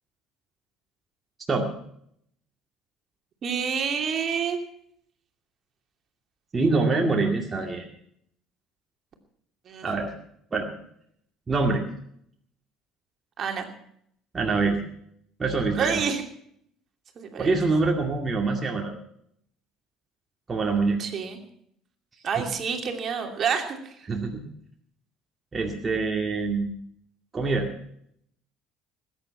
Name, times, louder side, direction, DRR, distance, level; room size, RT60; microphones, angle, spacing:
voice 1, 3.4-4.6 9.7-9.9 13.4-13.7 15.7-16.2 17.2-17.5 21.0-21.4 22.2-24.1, right 6 dB, 45° right, 4 dB, 2.8 m, -28 dB
voice 2, 6.5-7.9 9.8-10.1 10.5-10.7 11.5-11.8 14.3-14.8 15.4-16.0 17.4-19.0 20.5-21.0 22.4-22.5 24.1-24.4 25.5-26.8 27.3-27.7, right 3 dB, 30° right, 1 dB, 2.2 m, -25 dB
20.5 x 10.0 x 5.8 m, 0.69 s
figure-of-eight pair, 60°, 0 cm